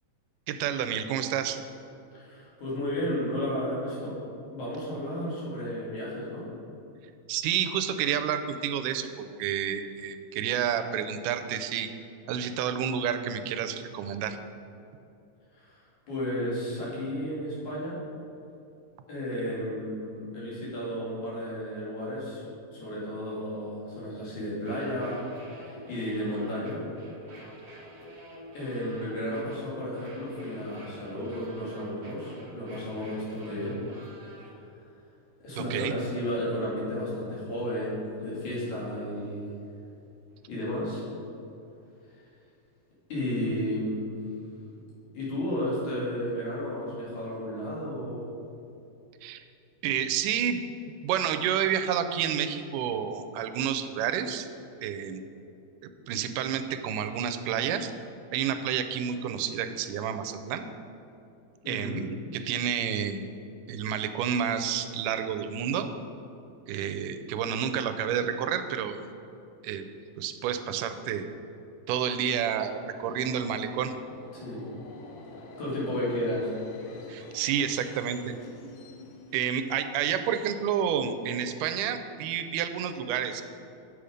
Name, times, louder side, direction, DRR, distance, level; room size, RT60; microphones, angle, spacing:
voice 1, 0.5-1.6 7.3-11.9 12.3-14.4 35.6-35.9 49.2-49.4 49.8-50.6 51.0-54.5 54.8-55.3 55.8-57.9 58.3-60.7 61.7-63.2 63.7-65.9 66.7-69.1 69.6-69.9 70.2-71.3 71.9-73.9 77.1-78.4 79.3-83.4, right 8 dB, 85° right, 8 dB, 2.1 m, -29 dB
voice 2, 2.1-4.1 4.5-6.5 15.5-15.8 16.1-18.0 19.1-22.4 22.7-26.9 28.5-33.8 34.6-34.7 35.4-39.6 40.5-41.0 43.1-44.2 45.1-48.3 61.6-62.0 74.3-74.6 75.4-76.5, equal, 65° left, -7 dB, 3.8 m, -33 dB
sound 1, 24.5-34.5, right 1 dB, 50° right, 1.0 m, -48 dB
Subway metro underground, 72.3-80.1, left 2 dB, 85° left, 2.5 m, -48 dB
8.6 x 7.0 x 5.0 m, 2.7 s
omnidirectional pair, 3.7 m